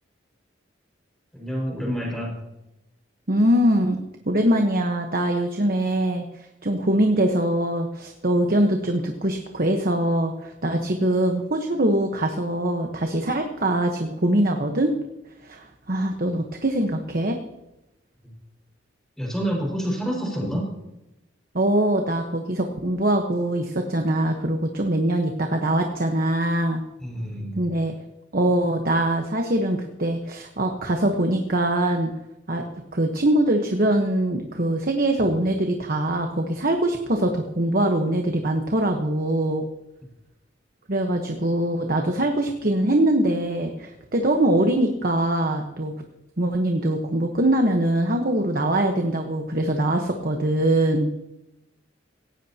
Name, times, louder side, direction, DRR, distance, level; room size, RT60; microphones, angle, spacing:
voice 1, 1.3-2.3 18.2-18.3 19.2-20.7 27.0-27.6, equal, 5° left, -3 dB, 5.5 m, -28 dB
voice 2, 3.3-4.0 4.3-6.2 6.6-14.9 15.4-17.4 21.5-26.8 27.5-27.9 28.3-32.1 32.5-32.6 32.9-39.7 40.9-45.9 46.4-51.1, right 1 dB, 50° right, 3 dB, 1.3 m, -23 dB
18.0 x 16.5 x 3.0 m, 0.91 s
head